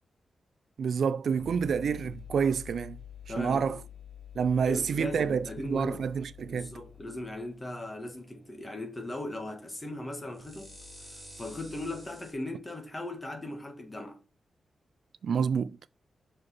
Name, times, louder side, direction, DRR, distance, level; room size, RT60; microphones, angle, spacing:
voice 1, 0.8-3.0 3.4-3.8 4.4-6.7 15.2-15.8, right 6 dB, 70° right, 0.3 m, -28 dB
sound 1, 1.4-12.3, left 6 dB, ahead, 3.7 m, -49 dB
voice 2, 3.3-3.8 4.7-6.1 6.5-10.7 11.4-14.2, left 1 dB, 20° left, 1.4 m, -38 dB
6.0 x 5.1 x 4.2 m
wide cardioid pair, 140°, 0 cm